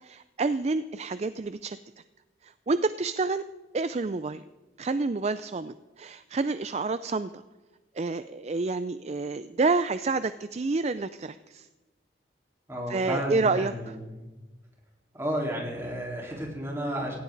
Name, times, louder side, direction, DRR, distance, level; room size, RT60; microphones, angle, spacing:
voice 1, 0.0-1.8 2.4-3.4 3.7-4.4 4.8-7.4 7.9-11.7 12.9-14.0, right 3 dB, 35° right, 13 dB, 0.4 m, -29 dB
voice 2, 12.7-14.2 15.1-17.2, equal, 15° right, -3 dB, 4.1 m, -32 dB
17.5 x 17.0 x 4.0 m, 1.1 s
head